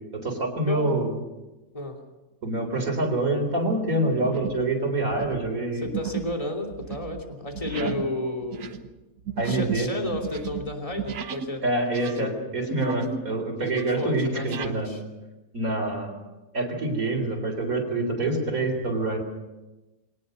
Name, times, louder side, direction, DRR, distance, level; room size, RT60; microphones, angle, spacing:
voice 1, 0.1-1.1 2.4-5.9 7.8-7.9 9.4-9.9 11.6-14.9 15.5-16.2 16.5-19.2, right 2 dB, 70° right, 3 dB, 4.2 m, -26 dB
sound 1, 2.5-2.9 3.4-3.6 4.2-4.7 5.0-11.6 11.8-13.3 13.6-14.8, right 8 dB, 85° right, 1.6 m, -35 dB
voice 2, 5.7-8.8 9.4-11.6 12.2-12.4 14.0-15.0, left 1 dB, 20° left, 2 dB, 3.0 m, -32 dB
23.0 x 19.0 x 6.6 m, 1.1 s
omnidirectional pair, 1.6 m